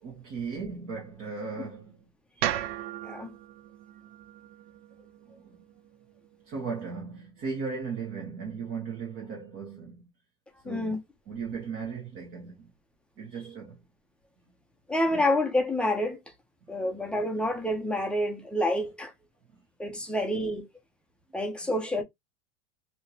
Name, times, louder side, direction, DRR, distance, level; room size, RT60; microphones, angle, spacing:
voice 1, 0.0-2.0 5.3-5.6 6.5-10.0 10.6-11.0 11.3-12.7 13.2-13.8 15.1-15.2 16.7-17.1 21.3-21.7, right 5 dB, 40° right, 1.4 m, -37 dB
sound 1, 2.4-6.6, right 12 dB, 65° right, 0.6 m, -36 dB
voice 2, 3.0-3.3 10.6-11.0 14.9-16.2 16.7-19.1 19.8-20.7 21.3-22.0, left 1 dB, 5° left, 0.5 m, -28 dB
3.3 x 2.8 x 2.8 m
supercardioid pair, 145°, 33 cm